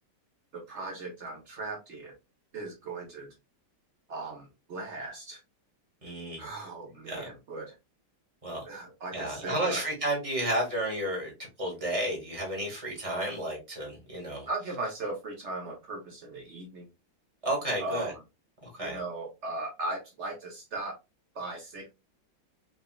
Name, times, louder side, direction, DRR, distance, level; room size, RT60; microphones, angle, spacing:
voice 1, 0.5-2.1 2.5-3.3 4.1-5.4 6.4-7.7 8.6-9.9 14.5-16.9 17.8-18.1 18.8-21.0 21.3-21.9, right 2 dB, 60° right, 0.7 m, -38 dB
voice 2, 6.0-6.4 7.1-7.3 8.4-8.6 9.1-14.5 17.4-18.1 18.6-19.0, right 1 dB, 25° right, 1.0 m, -32 dB
3.9 x 2.2 x 2.2 m
omnidirectional pair, 2.1 m